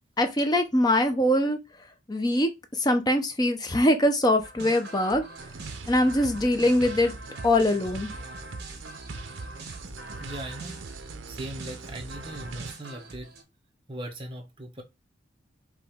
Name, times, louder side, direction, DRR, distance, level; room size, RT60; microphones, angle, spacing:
voice 1, 0.2-1.6 2.1-5.2 5.9-7.1 7.4-8.1, left 1 dB, 20° left, 0.6 m, -23 dB
sound 1, 4.4-13.4, right 2 dB, 55° right, 1.3 m, -43 dB
sound 2, 5.4-12.7, right 3 dB, 75° right, 0.6 m, -41 dB
voice 2, 10.2-10.8 11.3-13.3 13.9-14.8, right 1 dB, 25° right, 0.9 m, -39 dB
4.9 x 3.0 x 3.6 m
head